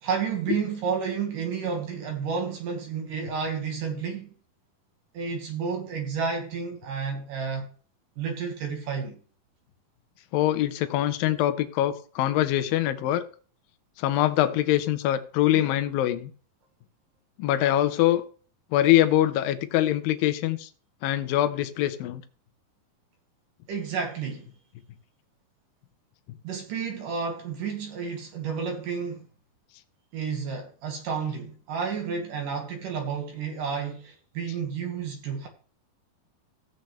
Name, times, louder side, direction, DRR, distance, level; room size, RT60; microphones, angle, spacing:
voice 1, 0.0-4.3 5.1-7.7 8.2-9.2 23.7-24.5 26.4-29.3 30.1-35.5, right 6 dB, 65° right, 2.8 m, -31 dB
voice 2, 10.3-13.2 14.0-16.3 17.4-18.2 18.7-20.7 21.0-22.2, left 13 dB, 75° left, 2.4 m, -23 dB
15.0 x 7.9 x 3.2 m
omnidirectional pair, 4.4 m